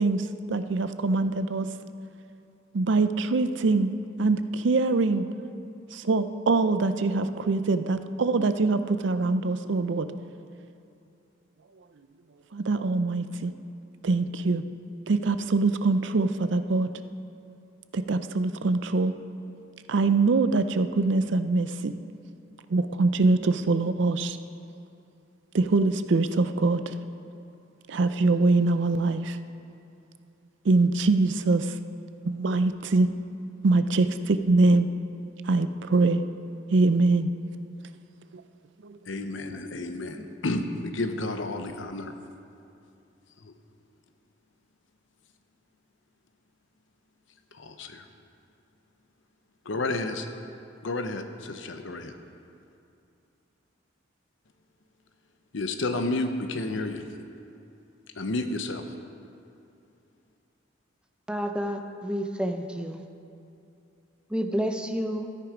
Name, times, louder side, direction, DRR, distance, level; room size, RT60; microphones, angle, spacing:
voice 1, 0.0-1.7 2.7-3.9 4.2-5.2 5.9-10.1 12.5-13.5 14.0-14.6 15.1-16.9 17.9-19.1 19.9-21.9 22.7-24.4 25.5-26.9 27.9-29.4 30.6-31.7 32.3-33.1 33.6-34.9 35.5-36.2 36.7-37.3 38.8-39.0 39.8-40.3, right 3 dB, 65° right, 11 dB, 0.5 m, -23 dB
voice 2, 39.1-42.1 43.4-43.5 47.6-48.0 49.7-50.2 50.8-52.1 55.5-57.0 58.2-58.8, left 2 dB, 70° left, 7 dB, 0.8 m, -31 dB
voice 3, 61.3-63.0 64.3-65.3, equal, 5° right, 5 dB, 0.6 m, -30 dB
13.5 x 9.4 x 5.0 m, 2.6 s
head